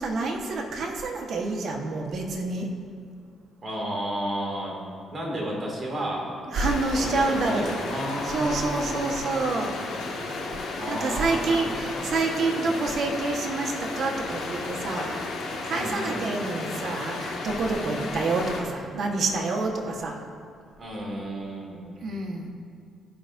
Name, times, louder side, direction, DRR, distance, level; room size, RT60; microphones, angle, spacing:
voice 1, 0.0-2.7 6.5-7.8 8.3-9.8 10.9-15.1 15.6-20.3 22.0-22.5, right 3 dB, 60° right, 1 dB, 1.3 m, -28 dB
voice 2, 3.6-4.8 5.1-6.3 6.9-9.1 10.8-12.1 12.4-12.8 15.7-16.3 17.5-18.2 20.8-21.9, equal, 40° right, -2 dB, 2.2 m, -33 dB
sound 1, 6.5-18.6, left 3 dB, 80° left, 1.7 m, -34 dB
15.5 x 5.7 x 2.6 m, 2.3 s
cardioid pair, 90°, 0 cm